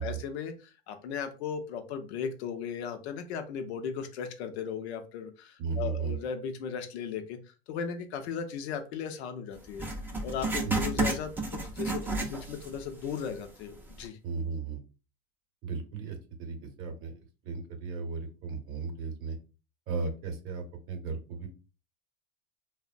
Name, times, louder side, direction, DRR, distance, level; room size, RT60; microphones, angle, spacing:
voice 1, 0.0-7.4 7.7-9.9 10.2-14.2, left 7 dB, 75° left, 7 dB, 0.6 m, -37 dB
voice 2, 5.6-6.2 10.6-11.1 14.2-14.8 15.6-19.4 19.9-21.5, right 5 dB, 40° right, 5 dB, 0.7 m, -35 dB
Writing, 9.8-12.8 13.1-13.2 13.9-14.0, right 2 dB, 5° right, 0.3 m, -31 dB
3.0 x 2.1 x 2.5 m, 0.33 s
supercardioid pair, 120°, 33 cm